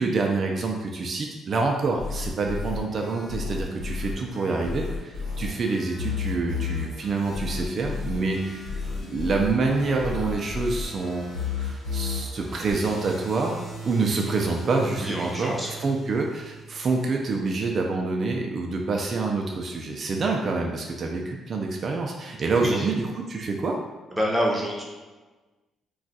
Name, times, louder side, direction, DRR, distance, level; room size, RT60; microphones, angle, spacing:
voice 1, 0.0-8.7 9.1-11.3 11.6-23.8, right 3 dB, 50° right, 1 dB, 0.4 m, -27 dB
sound 1, 2.0-12.7, left 5 dB, 85° left, 1.2 m, -32 dB
sound 2, 7.1-17.2, right 3 dB, 35° left, 0.9 m, -41 dB
voice 2, 15.0-15.8 22.6-22.9 24.1-24.8, equal, 5° right, -2 dB, 0.8 m, -27 dB
2.3 x 2.3 x 4.0 m, 1.2 s
cardioid pair, 80°, 0 cm